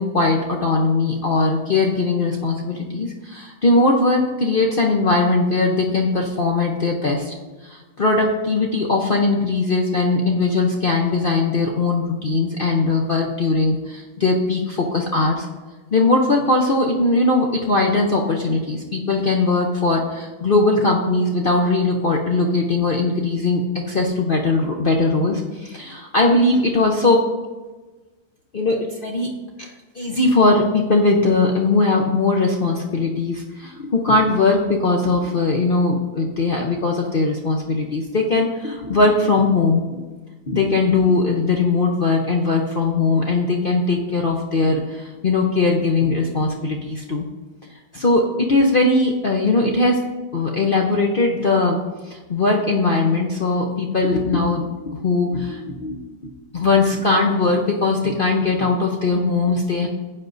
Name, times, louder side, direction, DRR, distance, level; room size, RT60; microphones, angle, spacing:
voice 1, 0.0-7.3 7.6-15.5 15.9-23.6 23.9-27.2 28.5-29.3 29.6-40.0 40.5-47.2 47.9-50.0 50.3-51.8 52.0-56.0 56.2-59.9, left 3 dB, 85° left, 0 dB, 0.4 m, -20 dB
15.5 x 9.6 x 2.6 m, 1.3 s
omnidirectional pair, 2.2 m